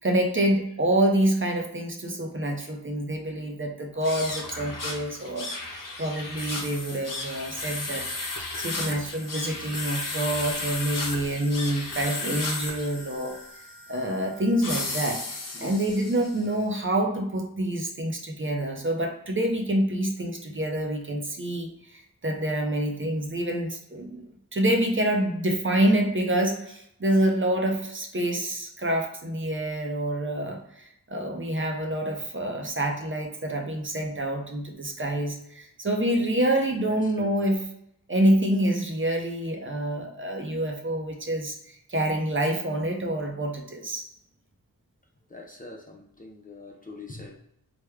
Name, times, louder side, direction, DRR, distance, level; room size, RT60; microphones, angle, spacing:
voice 1, 0.0-8.0 8.6-13.3 13.9-15.2 15.6-24.2 24.5-37.6 38.1-44.1, right 1 dB, 30° right, 2 dB, 0.7 m, -27 dB
sound 1, 4.0-16.5, left 2 dB, 55° left, 0.7 m, -34 dB
voice 2, 36.8-37.3 45.3-47.4, left 2 dB, 20° left, 0 dB, 0.6 m, -44 dB
3.2 x 2.2 x 3.4 m, 0.74 s
cardioid pair, 45°, 38 cm